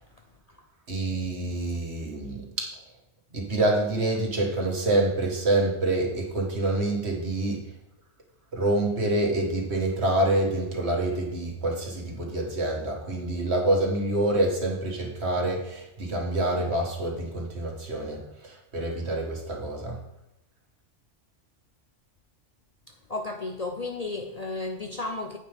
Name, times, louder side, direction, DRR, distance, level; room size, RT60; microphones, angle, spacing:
voice 1, 0.9-2.7 3.3-7.6 8.5-20.0, right 2 dB, 60° right, 2.0 m, -27 dB
voice 2, 22.9-25.4, left 2 dB, 40° left, 0.7 m, -33 dB
9.5 x 8.6 x 3.5 m
omnidirectional pair, 1.2 m